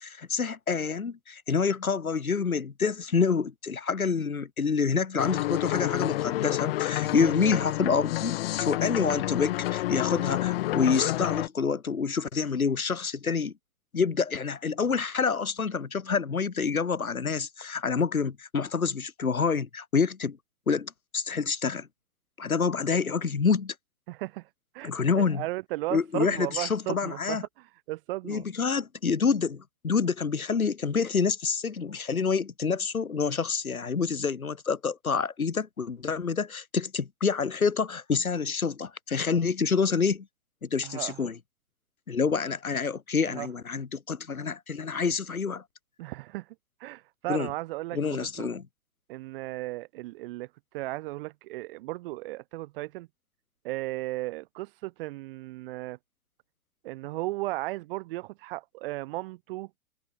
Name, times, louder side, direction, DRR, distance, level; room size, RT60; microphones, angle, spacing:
voice 1, 0.0-13.5 13.9-20.4 20.7-21.9 22.4-23.7 24.8-25.4 25.9-27.4 28.2-40.2 40.6-41.4 42.1-45.6 47.3-47.5 47.9-48.6, left 5 dB, 85° left, 1.5 m, -27 dB
sound 1, 5.2-11.5, left 16 dB, 45° left, 2.6 m, -29 dB
voice 2, 24.1-24.5 24.7-28.4 40.8-41.3 43.3-43.5 46.0-46.5 46.8-48.5 49.1-50.5 50.7-53.1 53.6-56.0 56.8-59.7, right 19 dB, 40° right, 4.6 m, -35 dB
figure-of-eight pair, 120°, 42 cm